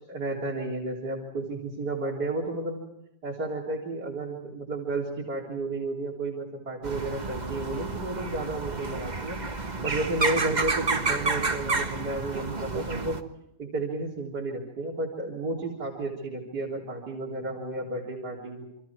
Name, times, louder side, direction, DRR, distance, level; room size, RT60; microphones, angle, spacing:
voice 1, 0.1-2.8 3.2-9.4 9.8-13.2 13.6-18.6, right 2 dB, 65° right, -4 dB, 4.3 m, -32 dB
sound 1, 6.8-13.2, right 3 dB, 25° right, 1.4 m, -30 dB
28.5 x 25.0 x 4.7 m, 0.85 s
omnidirectional pair, 1.9 m